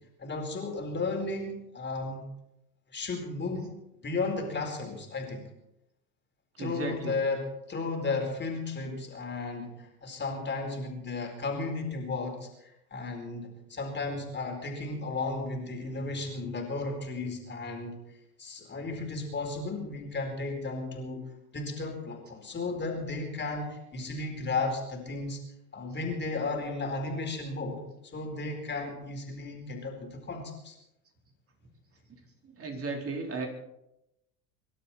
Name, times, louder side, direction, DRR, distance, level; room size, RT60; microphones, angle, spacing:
voice 1, 0.2-2.3 2.9-5.4 6.6-18.0 18.4-25.4 25.7-30.8, left 3 dB, 25° left, 2 dB, 4.4 m, -34 dB
voice 2, 6.6-7.2 32.6-33.5, right 3 dB, 30° right, 1 dB, 4.4 m, -34 dB
25.0 x 12.0 x 4.4 m, 0.85 s
hypercardioid pair, 80°, 44 cm